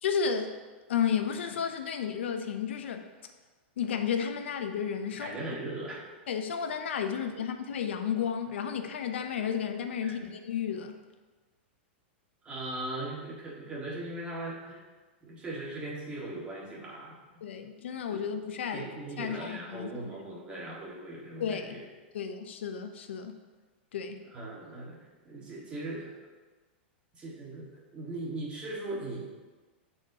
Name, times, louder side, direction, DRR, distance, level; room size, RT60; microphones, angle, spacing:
voice 1, 0.0-0.6 0.9-3.1 3.8-5.4 6.3-11.0 17.4-18.9 19.2-20.0 21.4-21.8 22.1-23.4 23.9-24.2, left 7 dB, 85° left, 7 dB, 0.7 m, -32 dB
voice 2, 5.2-6.0 7.3-7.4 10.0-10.2 12.4-14.8 15.2-17.2 18.1-18.3 18.7-21.8 24.3-26.2 27.1-29.3, right 2 dB, 15° right, -5 dB, 1.7 m, -39 dB
11.5 x 4.4 x 2.8 m, 1.3 s
supercardioid pair, 150°, 6 cm